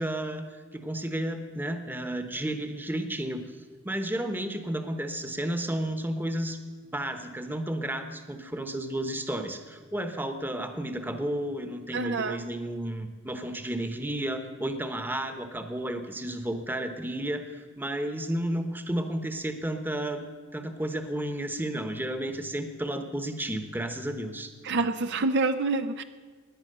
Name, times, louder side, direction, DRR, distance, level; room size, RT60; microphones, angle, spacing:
voice 1, 0.0-3.4 3.8-6.6 6.9-20.3 20.5-24.5, right 1 dB, 10° right, 8 dB, 1.1 m, -32 dB
voice 2, 11.9-12.4 24.6-26.0, right 3 dB, 55° right, 9 dB, 0.6 m, -27 dB
17.0 x 10.5 x 6.7 m, 1.5 s
head